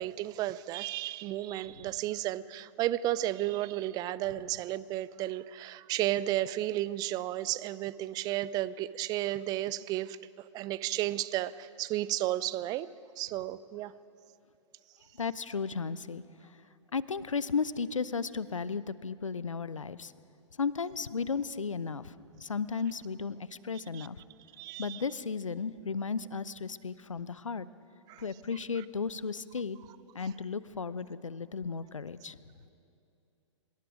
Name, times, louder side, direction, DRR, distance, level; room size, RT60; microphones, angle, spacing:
voice 1, 0.0-12.9 13.2-13.9 23.9-24.1 24.6-25.0 28.1-28.2, right 14 dB, 25° right, 18 dB, 0.5 m, -33 dB
voice 2, 15.2-16.2 16.9-20.1 20.6-24.2 24.8-27.7 28.2-29.8 30.1-32.4, left 5 dB, 80° left, 17 dB, 0.7 m, -34 dB
25.0 x 21.5 x 5.1 m, 2.6 s
figure-of-eight pair, 110°, 16 cm